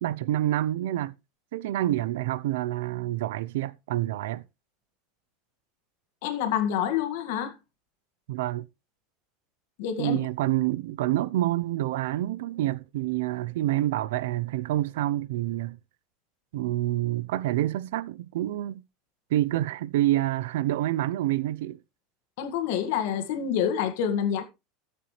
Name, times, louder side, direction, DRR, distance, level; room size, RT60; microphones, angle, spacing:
voice 1, 0.0-1.1 1.5-4.4 8.3-8.7 10.0-15.8 16.5-18.8 19.3-21.8, right 14 dB, 85° right, 0.6 m, -27 dB
voice 2, 6.2-7.5 9.8-10.2 22.4-24.4, left 9 dB, 70° left, 1.8 m, -27 dB
13.5 x 6.8 x 3.2 m
supercardioid pair, 155°, 0 cm